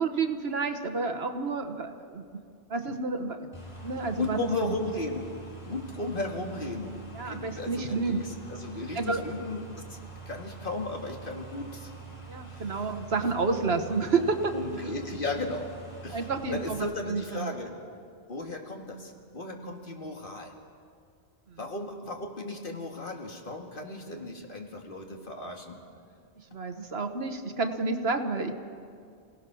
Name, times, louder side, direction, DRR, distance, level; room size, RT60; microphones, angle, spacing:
voice 1, 0.0-2.3 2.7-4.7 7.1-8.2 8.9-9.2 12.3-14.2 16.1-17.5 21.5-21.6 26.5-28.5, right 4 dB, 65° right, 7 dB, 1.4 m, -30 dB
sound 1, 3.5-16.8, right 5 dB, 25° left, 4.1 m, -45 dB
voice 2, 4.2-5.3 5.6-7.0 7.2-11.9 12.5-12.9 14.1-15.7 16.0-17.8 18.3-20.5 21.6-25.8, left 2 dB, 50° left, 2 dB, 2.2 m, -35 dB
28.0 x 17.5 x 6.2 m, 2.2 s
omnidirectional pair, 1.1 m